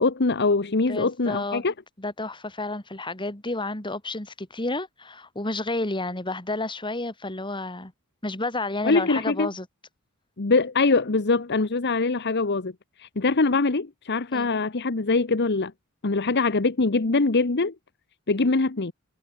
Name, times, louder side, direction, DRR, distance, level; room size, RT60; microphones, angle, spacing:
voice 1, 0.0-1.7 8.8-9.5 10.4-12.7 13.0-15.7 16.0-17.7 18.3-18.9, left 3 dB, 55° left, 1.1 m, -23 dB
voice 2, 0.9-1.6 2.0-7.9 8.2-9.7 14.3-14.5, left 2 dB, 25° left, 3.1 m, -31 dB
head